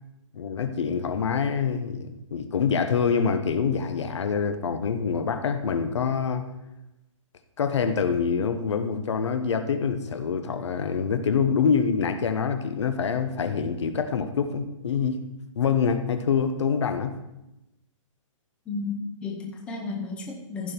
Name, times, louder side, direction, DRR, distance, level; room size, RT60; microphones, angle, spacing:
voice 1, 0.3-6.4 7.6-15.2 15.6-17.2, left 6 dB, 60° left, 8 dB, 1.0 m, -25 dB
voice 2, 18.7-20.7, left 4 dB, 5° left, -1 dB, 0.7 m, -33 dB
15.0 x 5.3 x 4.5 m, 0.93 s
hypercardioid pair, 170°, 17 cm